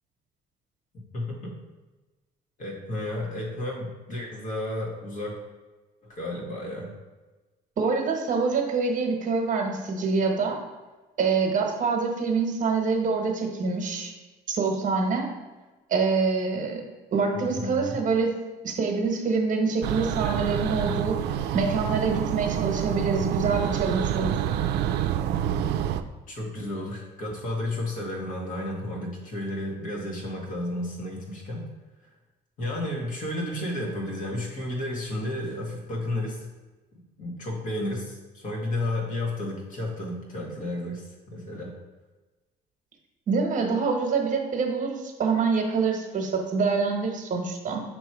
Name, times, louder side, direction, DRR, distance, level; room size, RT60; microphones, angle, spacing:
voice 1, 1.1-1.6 2.6-5.4 6.0-6.9 17.3-18.0 26.3-31.6 32.6-36.4 37.2-41.7, left 1 dB, 50° left, -2 dB, 1.8 m, -32 dB
voice 2, 7.8-10.6 11.2-14.1 14.5-15.3 15.9-16.8 17.1-18.3 18.6-21.2 21.5-24.4 43.3-47.8, right 4 dB, 50° right, 2 dB, 1.1 m, -25 dB
sound 1, 19.8-26.0, right 10 dB, 80° right, 0.4 m, -27 dB
6.7 x 3.1 x 4.7 m, 1.2 s
cardioid pair, 110°, 17 cm